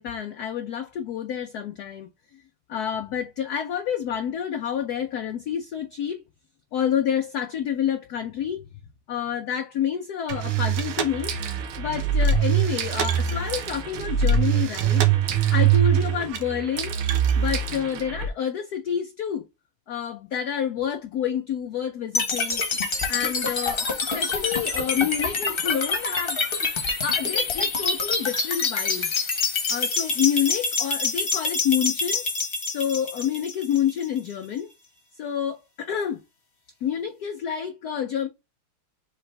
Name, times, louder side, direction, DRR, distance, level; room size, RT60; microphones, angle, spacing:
voice 1, 0.0-2.4 2.7-6.2 6.7-8.6 9.1-11.3 11.8-15.0 15.5-17.0 17.4-19.5 19.9-22.6 23.1-23.9 24.1-26.4 27.0-29.1 29.7-32.2 32.7-34.7 35.1-36.2 36.8-38.3, left 9 dB, 75° left, 0.9 m, -28 dB
sound 1, 10.3-18.3, right 7 dB, 85° right, 1.7 m, -23 dB
sound 2, 22.1-34.2, left 4 dB, 35° left, 0.9 m, -26 dB
4.9 x 3.3 x 3.2 m
omnidirectional pair, 2.3 m